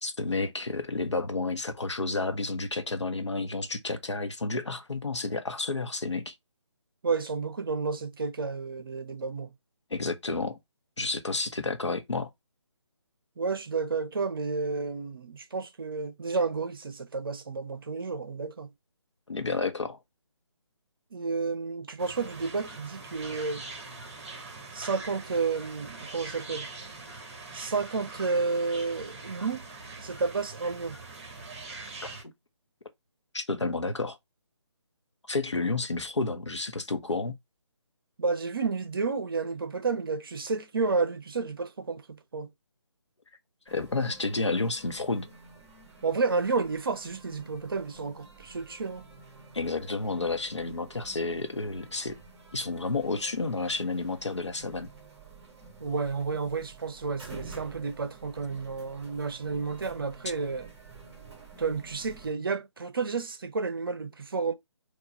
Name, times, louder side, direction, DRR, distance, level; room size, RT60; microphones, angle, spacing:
voice 1, 0.0-6.3 9.9-10.6 11.0-12.3 19.3-20.0 32.0-32.1 33.3-34.2 35.3-37.4 43.7-45.3 49.5-52.2 52.5-54.9, left 3 dB, 70° left, 0.9 m, -31 dB
voice 2, 7.0-9.5 13.4-18.7 21.1-23.6 24.7-26.7 27.5-29.7 30.0-31.0 38.2-42.5 46.0-49.1 55.8-60.7 61.6-64.5, right 4 dB, 50° right, 0.7 m, -31 dB
sound 1, 22.0-32.2, right 3 dB, 25° right, 1.2 m, -43 dB
sound 2, 43.7-62.3, right 4 dB, 10° right, 1.5 m, -50 dB
4.5 x 2.4 x 4.1 m
figure-of-eight pair, 150°, 15 cm